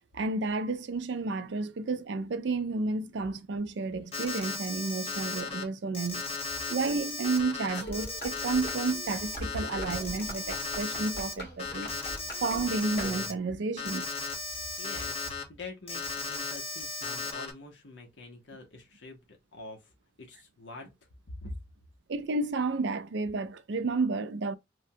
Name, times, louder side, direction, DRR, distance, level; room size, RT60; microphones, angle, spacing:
voice 1, 0.1-6.2 6.7-11.9 12.4-14.1 22.1-24.6, right 3 dB, 70° right, 0.4 m, -31 dB
Alarm, 4.1-5.6 5.9-11.3 11.6-13.3 13.8-15.4 15.9-17.5, left 3 dB, 30° left, 0.8 m, -36 dB
sound 1, 7.7-13.6, right 1 dB, 55° left, 1.6 m, -42 dB
voice 2, 14.8-19.9 20.2-21.6, left 2 dB, 75° left, 0.9 m, -45 dB
3.3 x 2.2 x 2.7 m
head